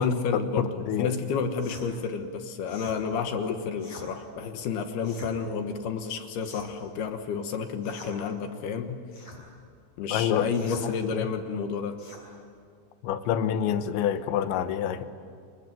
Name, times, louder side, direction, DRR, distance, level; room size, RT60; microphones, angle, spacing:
voice 1, 0.0-9.0 10.0-12.0, left 6 dB, 70° left, 7 dB, 3.1 m, -30 dB
voice 2, 0.6-1.1 10.1-11.3 13.0-15.1, left 8 dB, 90° left, 10 dB, 3.4 m, -27 dB
sound 1, 1.6-1.9 2.6-3.0 3.8-4.1 5.0-5.3 6.4-6.8 7.8-8.1 9.1-9.4 10.5-10.9 12.0-12.2, left 2 dB, 40° left, 6.9 m, -45 dB
29.5 x 20.5 x 9.2 m, 2.1 s
omnidirectional pair, 5.1 m